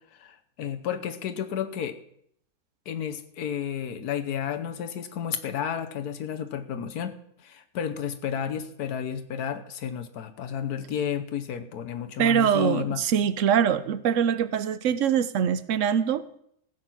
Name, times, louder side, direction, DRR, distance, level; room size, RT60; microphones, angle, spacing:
voice 1, 0.1-2.0 2.9-7.1 7.4-13.0, left 8 dB, 85° left, 8 dB, 1.4 m, -32 dB
voice 2, 12.2-16.2, right 8 dB, 60° right, 14 dB, 1.0 m, -23 dB
15.5 x 7.8 x 6.0 m, 0.69 s
omnidirectional pair, 1.6 m